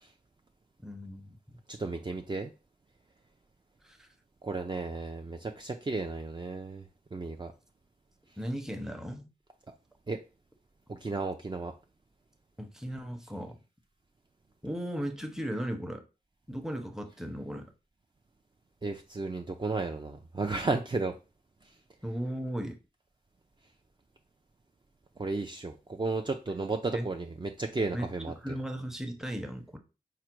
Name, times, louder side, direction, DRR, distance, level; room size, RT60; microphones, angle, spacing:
voice 1, 0.8-1.4 3.8-4.1 8.4-9.3 12.6-13.6 14.6-16.0 16.5-17.7 22.0-22.8 26.9-27.1 27.9-29.8, equal, 5° right, 0.8 m, -36 dB
voice 2, 1.7-2.5 4.4-6.8 7.1-7.5 10.1-10.2 10.9-11.7 18.8-21.1 25.2-28.3, right 3 dB, 30° right, 0.4 m, -33 dB
4.8 x 2.1 x 4.5 m
cardioid pair, 55°, 16 cm